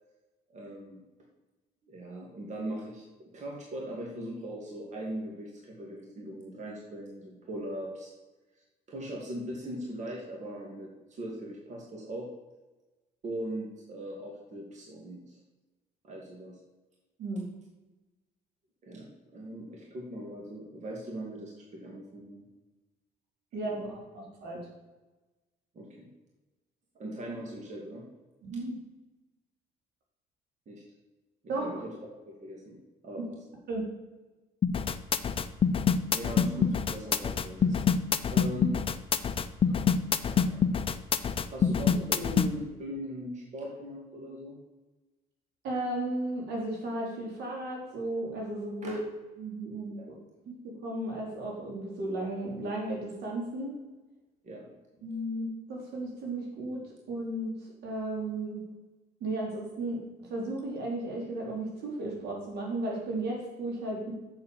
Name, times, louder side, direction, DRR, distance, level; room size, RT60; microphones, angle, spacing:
voice 1, 0.5-1.0 1.8-8.1 8.9-12.3 13.2-15.4 16.0-16.6 18.8-22.4 23.7-23.9 25.7-26.1 26.9-28.1 30.7-30.8 31.4-31.9 32.3-32.8 33.0-33.2 36.1-37.9 38.3-38.7 39.7-39.8 40.3-40.7 41.5-44.6 48.8-49.0 50.0-50.1 54.4-54.7, right 1 dB, 45° right, -1 dB, 2.5 m, -40 dB
voice 2, 23.5-24.6 28.4-28.7 31.5-31.8 33.7-33.8 45.6-49.0 49.4-50.1 50.4-53.8 55.0-57.5 57.8-58.6 59.2-64.1, right 2 dB, 75° right, -1 dB, 3.9 m, -34 dB
sound 1, 34.6-42.5, left 7 dB, 35° left, 0.7 m, -25 dB
7.5 x 7.3 x 7.3 m, 1.1 s
cardioid pair, 110°, 17 cm